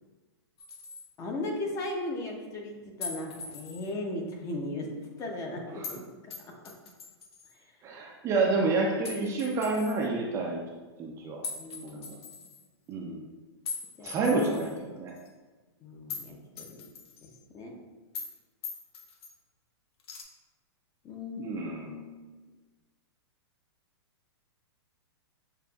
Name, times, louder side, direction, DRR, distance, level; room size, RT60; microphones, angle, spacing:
sound 1, 0.6-1.1 3.0-3.9 5.8-6.0 6.3-7.5 9.0-10.0 11.4-12.6 13.7-14.8 15.2-15.3 16.1-16.3 16.6-17.4 18.1-18.4 18.6-19.3 20.0-20.2, left 5 dB, 65° left, 0.7 m, -41 dB
voice 1, 1.2-6.7 7.6-7.7 11.6-12.5 14.0-14.2 15.8-16.9 17.2-17.8 21.0-22.2, left 2 dB, 20° left, 1 dB, 0.6 m, -38 dB
voice 2, 7.8-10.6 11.0-11.4 11.8-12.2 12.9-13.3 14.0-15.1 21.4-22.0, right 3 dB, 20° right, -1 dB, 0.4 m, -29 dB
6.6 x 2.4 x 2.3 m, 1.2 s
hypercardioid pair, 140°, 14 cm